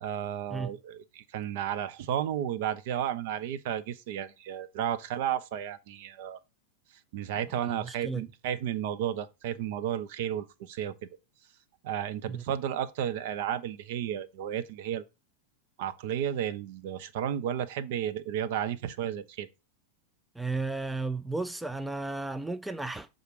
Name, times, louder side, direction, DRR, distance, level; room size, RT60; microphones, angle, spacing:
voice 1, 0.0-6.4 7.1-11.0 11.8-15.0 15.8-19.5, right 10 dB, 50° right, 0.7 m, -33 dB
voice 2, 7.6-8.3 12.3-12.4 20.4-23.1, right 3 dB, 5° right, 0.4 m, -34 dB
6.6 x 3.8 x 4.8 m
figure-of-eight pair, 90°, 0 cm